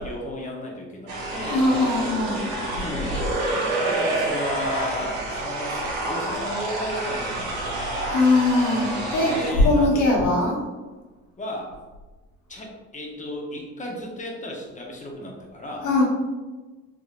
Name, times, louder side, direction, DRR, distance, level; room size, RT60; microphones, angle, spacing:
voice 1, 0.0-1.7 2.7-3.2 3.8-5.8 6.1-7.9 9.2-10.1 11.4-11.8 12.5-16.0, left 1 dB, 25° left, 0 dB, 0.9 m, -34 dB
sound 1, 1.1-9.5, right 2 dB, 85° right, 1.0 m, -28 dB
voice 2, 1.5-2.5 8.0-10.6 15.8-16.0, left 2 dB, 80° left, -3 dB, 1.3 m, -21 dB
3.6 x 3.0 x 2.5 m, 1.2 s
cardioid pair, 90°, 30 cm